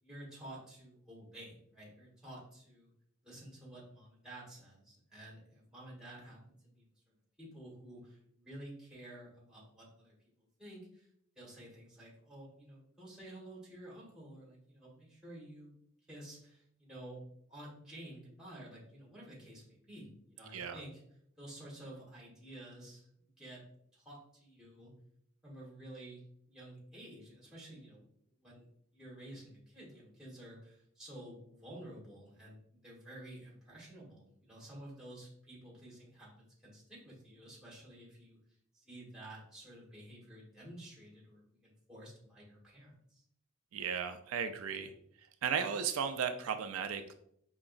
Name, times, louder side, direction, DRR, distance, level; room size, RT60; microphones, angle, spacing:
voice 1, 0.0-2.9 3.2-6.4 6.7-11.1 11.4-15.7 16.1-17.2 17.5-21.0 21.4-23.1 23.4-23.6 23.9-24.9 25.4-26.2 26.5-28.0 28.4-28.7 28.9-38.4 38.8-43.2, right 1 dB, 5° right, -5 dB, 1.4 m, -51 dB
voice 2, 20.5-20.8 43.7-44.9 45.4-47.1, right 7 dB, 85° right, 8 dB, 0.4 m, -35 dB
4.7 x 2.9 x 2.5 m, 0.70 s
head